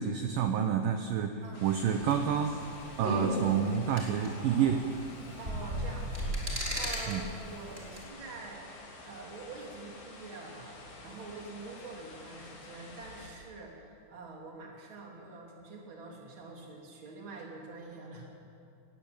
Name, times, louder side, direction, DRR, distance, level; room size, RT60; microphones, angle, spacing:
voice 1, 0.0-2.6 3.0-4.9 7.1-7.2, right 8 dB, 85° right, 6 dB, 2.0 m, -29 dB
sound 1, 1.5-13.3, left 2 dB, 75° left, 5.9 m, -50 dB
sound 2, 2.0-8.0, equal, 15° right, 3.8 m, -36 dB
voice 2, 5.4-8.6 9.1-18.3, right 3 dB, 30° right, -1 dB, 3.5 m, -46 dB
20.0 x 16.5 x 8.9 m, 2.5 s
omnidirectional pair, 5.2 m